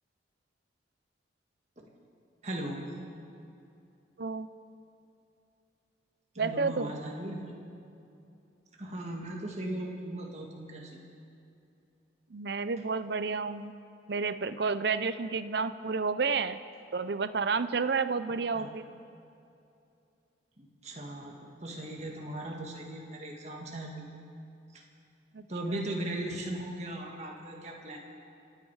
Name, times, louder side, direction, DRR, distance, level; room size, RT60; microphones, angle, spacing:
voice 1, 2.4-2.9 6.3-7.6 8.8-11.0 18.5-18.7 20.6-24.0 24.7-24.8 25.5-28.0, right 1 dB, 35° right, 0 dB, 1.9 m, -38 dB
voice 2, 6.4-6.9 12.3-13.7 14.1-16.6 16.9-18.8 25.3-25.4, right 4 dB, 60° right, 13 dB, 0.6 m, -30 dB
28.0 x 9.6 x 4.8 m, 2.7 s
head